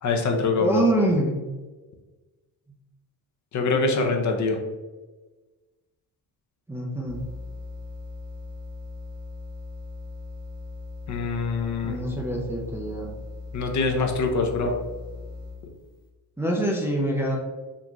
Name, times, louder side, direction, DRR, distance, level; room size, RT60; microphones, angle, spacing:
voice 1, 0.0-0.8 3.5-4.6 11.1-11.9 13.5-14.7, left 3 dB, 50° left, 3 dB, 0.6 m, -24 dB
voice 2, 0.6-1.4 6.7-7.2 11.8-13.1 16.4-17.4, right 1 dB, 5° right, -2 dB, 0.4 m, -25 dB
sound 1, 7.0-15.7, left 3 dB, 30° right, 0.8 m, -39 dB
3.8 x 2.8 x 2.3 m, 1.2 s
cardioid pair, 120°, 39 cm